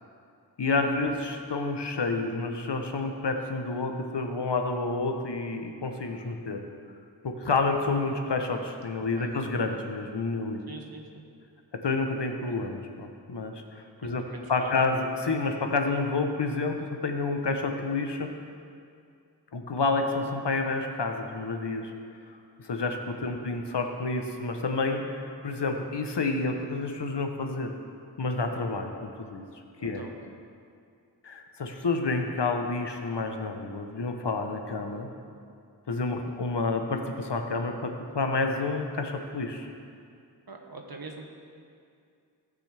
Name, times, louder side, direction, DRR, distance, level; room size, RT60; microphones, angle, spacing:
voice 1, 0.6-6.6 7.2-10.6 11.7-14.2 14.5-18.3 19.5-21.9 22.6-27.7 28.2-29.4 29.8-30.0 31.2-35.1 35.9-39.7, left 3 dB, 75° left, 4 dB, 1.0 m, -29 dB
voice 2, 10.7-11.2 14.0-14.9 23.1-23.4 29.8-30.3 36.2-36.5 40.5-41.3, right 3 dB, 60° right, 1 dB, 1.4 m, -43 dB
18.0 x 6.0 x 3.4 m, 2.4 s
wide cardioid pair, 40°, 42 cm